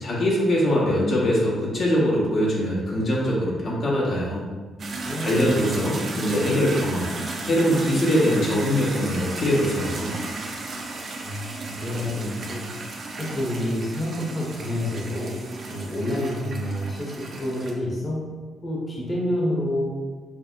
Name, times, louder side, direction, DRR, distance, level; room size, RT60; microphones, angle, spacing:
voice 1, 0.0-4.4 5.2-7.1 7.4-10.1, equal, 55° left, -5 dB, 0.9 m, -22 dB
sound 1, 4.8-17.7, right 2 dB, 50° right, 0.6 m, -34 dB
voice 2, 11.2-15.4 15.7-18.2 18.6-19.9, left 1 dB, 30° left, -4 dB, 0.9 m, -28 dB
5.4 x 2.0 x 2.5 m, 1.4 s
cardioid pair, 90°, 0 cm